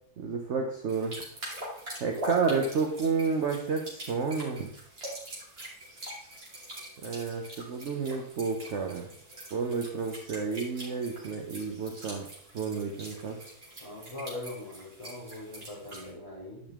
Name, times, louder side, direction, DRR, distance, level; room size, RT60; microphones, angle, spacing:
voice 1, 0.2-1.2 2.0-4.7 7.0-9.1 9.5-12.3 12.5-13.4, right 5 dB, 50° right, 2 dB, 1.0 m, -30 dB
sound 1, 0.9-16.1, right 1 dB, 35° right, 2.8 m, -44 dB
voice 2, 13.8-16.6, left 2 dB, 20° left, -6 dB, 3.2 m, -41 dB
10.5 x 5.3 x 3.6 m, 0.69 s
omnidirectional pair, 1.8 m